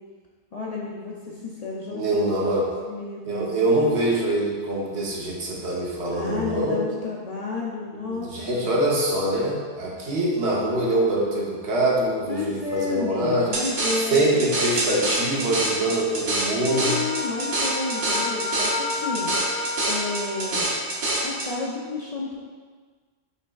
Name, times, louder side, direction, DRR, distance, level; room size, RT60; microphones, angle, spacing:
voice 1, 0.5-2.3 2.9-3.6 6.1-8.7 12.3-14.3 16.7-19.3 19.9-20.7 21.2-22.4, left 3 dB, 50° left, -4 dB, 0.5 m, -31 dB
voice 2, 1.9-2.7 3.3-6.8 7.9-13.5 14.1-17.0, right 1 dB, 85° right, -3 dB, 1.1 m, -24 dB
sound 1, 13.5-21.5, right 1 dB, 50° right, 0.9 m, -26 dB
Wind instrument woodwind instrument, 16.7-20.8, left 2 dB, 70° left, 1.4 m, -32 dB
5.7 x 3.2 x 2.3 m, 1.5 s
omnidirectional pair, 1.1 m